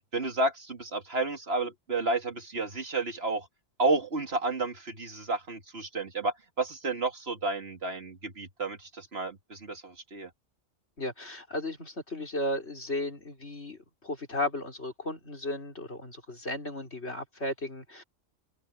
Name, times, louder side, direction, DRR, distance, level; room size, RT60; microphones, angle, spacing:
voice 1, 0.1-3.5 3.8-10.3, right 3 dB, 55° right, 2.3 m, -31 dB
voice 2, 11.0-18.0, left 1 dB, 60° left, 4.9 m, -35 dB
open air
omnidirectional pair, 1.3 m